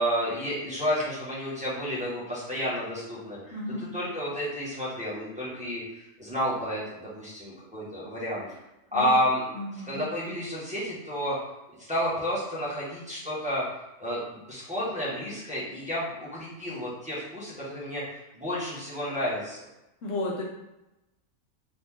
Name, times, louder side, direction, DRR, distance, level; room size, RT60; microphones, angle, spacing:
voice 1, 0.0-8.5 8.9-9.5 9.7-11.3 11.8-13.7 14.0-19.6, equal, 5° right, -10 dB, 1.4 m, -31 dB
voice 2, 3.5-3.9 8.9-9.1 9.5-10.0 20.0-20.4, left 2 dB, 70° left, -3 dB, 1.2 m, -33 dB
4.0 x 3.1 x 3.6 m, 0.94 s
omnidirectional pair, 1.4 m